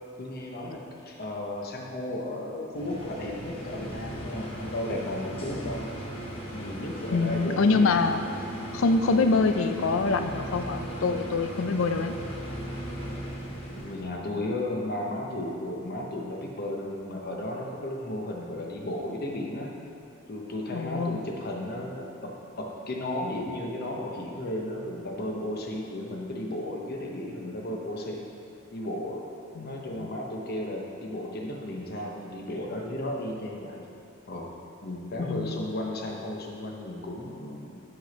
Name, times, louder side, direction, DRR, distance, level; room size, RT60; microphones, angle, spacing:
voice 1, 0.2-5.9 6.5-7.9 13.7-19.7 20.3-28.3 28.7-29.3 29.5-33.9 34.3-34.5 34.8-37.8, left 1 dB, 50° left, 0 dB, 0.9 m, -34 dB
sound 1, 2.7-14.1, equal, 30° left, 1.1 m, -37 dB
voice 2, 7.1-8.2 8.7-12.1 20.7-21.3 29.6-30.1 35.3-35.7, left 3 dB, 80° left, 8 dB, 0.5 m, -25 dB
6.0 x 5.8 x 5.2 m, 2.7 s
head